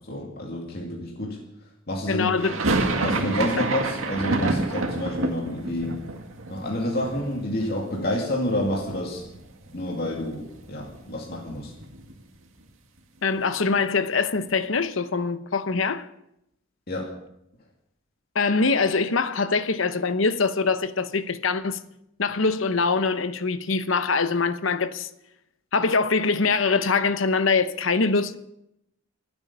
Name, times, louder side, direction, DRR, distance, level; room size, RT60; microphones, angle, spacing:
voice 1, 0.1-1.4 1.9-2.3 3.0-5.9 6.5-9.2 9.7-11.7 16.9-17.1, left 1 dB, 50° left, 2.4 m, -29 dB
voice 2, 2.1-2.6 3.6-3.7 13.2-16.1 18.3-21.8 22.2-25.1 25.7-28.4, left 4 dB, 75° left, 0.9 m, -23 dB
sound 1, 2.4-8.3 8.6-9.4 9.7-9.8 10.1-12.2, right 2 dB, 90° right, 2.1 m, -28 dB
25.5 x 9.1 x 5.6 m
head